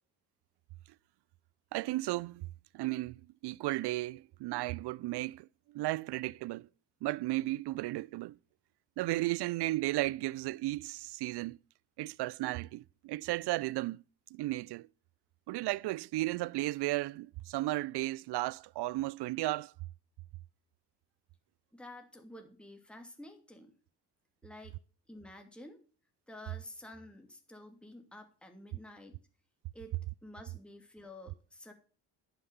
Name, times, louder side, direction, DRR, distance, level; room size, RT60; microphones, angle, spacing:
voice 1, 1.7-2.5 2.7-6.7 7.0-8.4 9.0-11.6 12.0-14.0 14.3-14.9 15.5-19.7, right 18 dB, 60° right, 0.5 m, -34 dB
voice 2, 21.7-23.7 24.4-24.8 25.1-25.8 26.3-29.2 29.7-29.9 30.2-31.7, left 1 dB, ahead, 2.6 m, -50 dB
11.0 x 6.1 x 6.9 m
hypercardioid pair, 50°, 46 cm